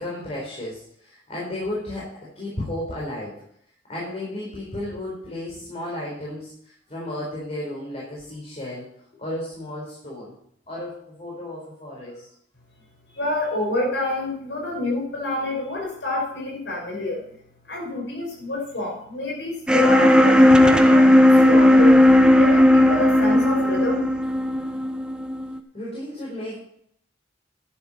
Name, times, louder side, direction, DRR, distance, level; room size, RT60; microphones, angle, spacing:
voice 1, 0.0-3.4 3.9-8.9 9.2-10.3 10.7-12.3 25.7-26.5, left 1 dB, 35° left, -5 dB, 4.4 m, -33 dB
voice 2, 13.1-17.2 17.7-22.1 22.4-24.0, left 2 dB, 85° left, 0 dB, 5.4 m, -28 dB
sound 1, 19.7-25.6, left 1 dB, 5° right, 0.9 m, -15 dB
11.0 x 11.0 x 4.4 m, 0.69 s
head